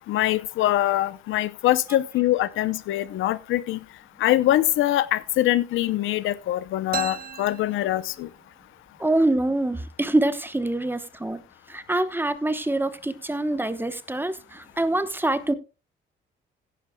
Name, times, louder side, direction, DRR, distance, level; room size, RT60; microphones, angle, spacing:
voice 1, 0.1-3.8 4.2-8.3, left 14 dB, 85° left, 0.7 m, -23 dB
sound 1, 6.9-8.6, right 8 dB, 50° right, 0.8 m, -36 dB
voice 2, 9.0-11.4 11.7-15.5, right 1 dB, 10° right, 1.0 m, -25 dB
16.5 x 10.0 x 2.3 m
cardioid pair, 90°, 20 cm